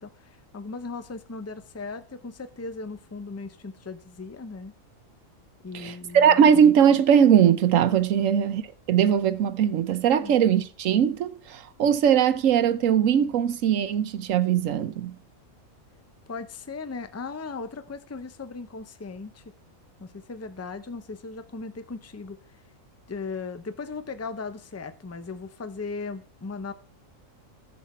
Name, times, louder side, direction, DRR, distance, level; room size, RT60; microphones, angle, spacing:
voice 1, 0.0-4.7 5.6-6.6 8.2-8.4 10.2-10.4 16.3-19.4 20.0-22.4 23.1-26.7, left 4 dB, 20° left, 0.5 m, -37 dB
voice 2, 5.7-8.6 8.9-15.1, right 8 dB, 75° right, 1.1 m, -20 dB
11.0 x 7.5 x 4.3 m
omnidirectional pair, 1.4 m